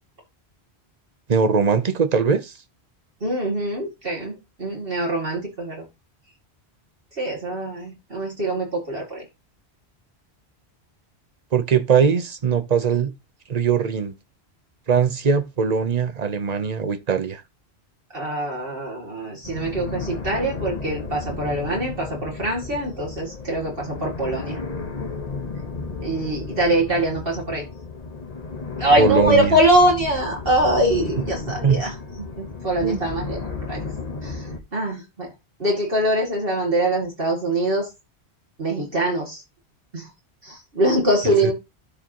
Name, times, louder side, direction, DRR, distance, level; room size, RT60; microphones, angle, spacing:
voice 1, 1.3-2.5 11.5-13.1 13.5-14.2 14.9-17.4 29.0-29.6 31.6-31.8 32.8-33.0 41.2-41.5, right 6 dB, 40° right, 0.9 m, -20 dB
voice 2, 3.2-5.8 7.2-9.2 18.1-24.6 26.0-27.6 28.8-33.8 34.2-35.3 35.6-37.9 38.6-39.4 39.9-40.1 40.4-41.5, right 1 dB, 60° right, 2.8 m, -23 dB
sound 1, 19.4-34.6, left 4 dB, 40° left, 1.2 m, -33 dB
13.0 x 4.8 x 3.0 m
omnidirectional pair, 1.1 m